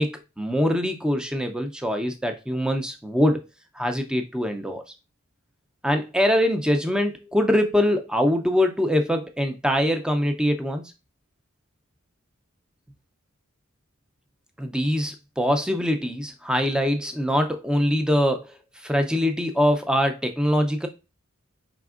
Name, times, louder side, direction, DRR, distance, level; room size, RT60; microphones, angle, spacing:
voice 1, 0.0-3.4 3.7-4.8 5.8-10.8 14.6-20.9, equal, 5° right, 6 dB, 0.4 m, -23 dB
5.0 x 3.4 x 2.4 m, 0.28 s
head